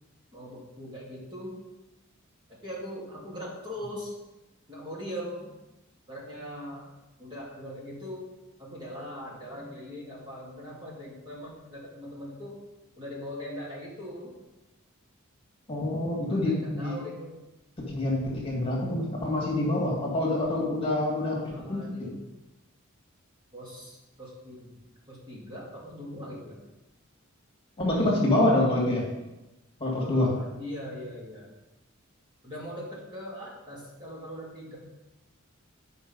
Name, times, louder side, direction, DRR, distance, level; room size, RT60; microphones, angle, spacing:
voice 1, 0.3-1.6 2.5-4.1 4.7-5.5 6.1-6.9 7.2-8.3 8.6-12.6 13.0-14.3 16.3-17.3 21.5-22.2 23.5-24.8 25.1-26.6 30.0-31.5 32.4-34.8, equal, 25° right, -5 dB, 2.4 m, -40 dB
voice 2, 15.7-17.0 17.8-21.9 27.8-29.0 29.8-30.3, left 1 dB, 25° left, -3 dB, 2.4 m, -26 dB
9.8 x 5.4 x 5.5 m, 1.0 s
head